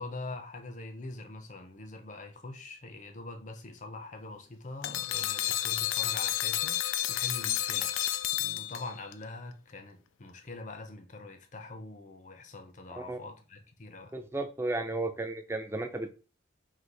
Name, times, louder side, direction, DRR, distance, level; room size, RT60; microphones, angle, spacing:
voice 1, 0.0-7.9 8.3-14.1, left 2 dB, 40° left, 0.6 m, -43 dB
sound 1, 4.8-9.1, left 13 dB, 90° left, 0.4 m, -31 dB
voice 2, 14.1-16.1, right 2 dB, 10° right, 0.4 m, -34 dB
3.9 x 2.5 x 4.6 m
head